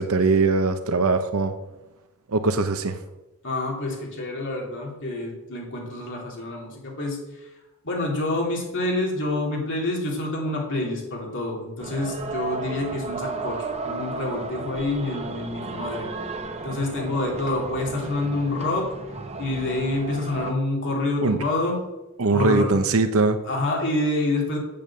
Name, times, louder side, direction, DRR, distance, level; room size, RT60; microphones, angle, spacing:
voice 1, 0.0-1.5 2.3-3.0 21.2-21.4 22.2-23.4, right 3 dB, 65° right, 9 dB, 0.8 m, -21 dB
voice 2, 3.4-7.5 7.8-16.1 16.6-18.9 19.4-21.8 22.3-22.8 23.4-24.6, left 2 dB, 55° left, -2 dB, 3.2 m, -27 dB
sound 1, 11.8-20.5, right 3 dB, 30° right, 0.9 m, -34 dB
8.7 x 7.1 x 7.4 m, 0.99 s
head